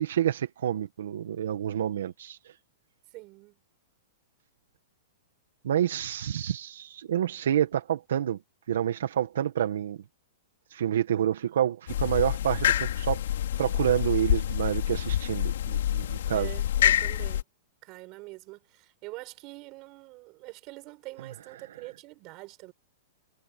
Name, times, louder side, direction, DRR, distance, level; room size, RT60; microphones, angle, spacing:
voice 1, 0.0-2.4 5.6-8.4 8.7-10.0 10.7-13.2 13.6-16.5, right 10 dB, 70° right, 1.6 m, -28 dB
voice 2, 3.1-3.6 16.3-17.4 17.8-22.7, right 23 dB, 30° right, 6.8 m, -45 dB
sound 1, 11.9-17.4, left 11 dB, 65° left, 2.7 m, -27 dB
supercardioid pair, 170°, 0 cm